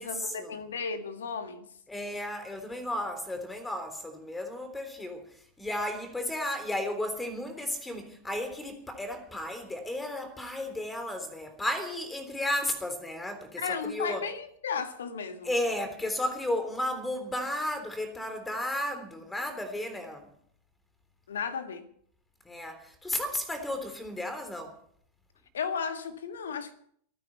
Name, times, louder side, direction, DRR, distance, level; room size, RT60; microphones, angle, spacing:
voice 1, 0.0-1.7 13.6-15.5 21.3-21.9 25.5-26.7, left 6 dB, 65° left, 1.8 m, -34 dB
voice 2, 1.9-5.2 5.6-13.6 13.9-14.2 15.5-20.2 22.5-22.8 23.0-24.7, left 1 dB, 10° left, 3.6 m, -33 dB
26.5 x 9.8 x 4.5 m
figure-of-eight pair, 90°, 0 cm